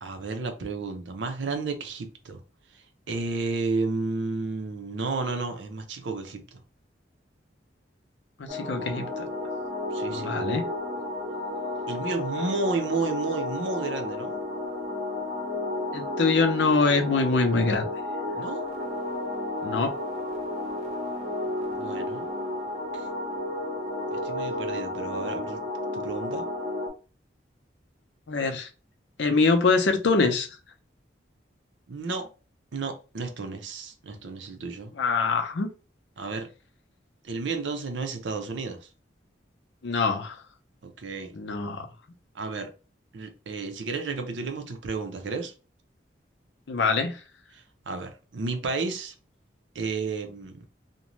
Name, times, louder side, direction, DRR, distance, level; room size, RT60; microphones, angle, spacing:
voice 1, 0.0-2.4 2.7-6.6 9.9-10.3 11.9-14.4 18.3-18.7 21.7-22.3 22.9-23.1 24.1-25.6 25.9-26.5 31.9-32.3 32.7-34.9 36.2-36.5 37.2-38.9 40.8-41.3 42.3-42.7 43.1-45.5 47.5-49.1 49.7-50.6, right 3 dB, 80° right, 0.6 m, -32 dB
voice 2, 8.4-9.0 10.1-10.6 15.9-17.9 19.6-19.9 28.3-28.7 29.2-30.5 35.0-35.7 39.8-40.4 41.3-41.8 46.7-47.1, left 4 dB, 70° left, 0.5 m, -24 dB
sound 1, 8.5-26.9, left 1 dB, 35° right, 0.7 m, -32 dB
2.5 x 2.1 x 3.0 m
head